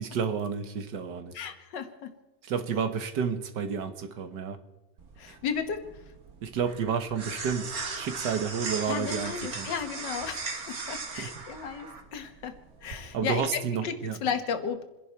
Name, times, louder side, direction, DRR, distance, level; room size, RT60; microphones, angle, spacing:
voice 1, 0.0-1.4 2.4-4.6 5.3-5.4 6.4-9.7 11.2-11.3 13.1-14.2, right 6 dB, 75° right, 9 dB, 1.9 m, -31 dB
voice 2, 1.3-2.1 5.2-5.9 8.9-12.5 12.8-13.9 14.2-14.8, left 6 dB, 85° left, 9 dB, 1.9 m, -34 dB
sound 1, 5.0-13.4, right 4 dB, 60° right, 2.2 m, -39 dB
28.0 x 11.0 x 4.6 m, 1.0 s
omnidirectional pair, 1.9 m